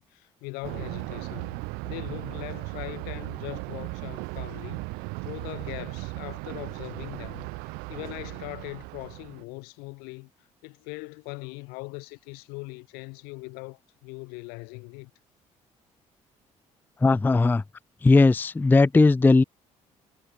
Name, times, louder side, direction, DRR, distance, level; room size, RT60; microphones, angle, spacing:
voice 1, 0.0-1.6 1.8-4.9 5.2-7.5 7.9-10.3 10.6-15.1, left 29 dB, 80° left, 2.6 m, -40 dB
Thunder, 0.6-9.4, right 28 dB, 80° right, 1.0 m, -37 dB
voice 2, 17.0-17.6 18.0-19.4, left 3 dB, 10° left, 0.3 m, -18 dB
hypercardioid pair, 55°, 16 cm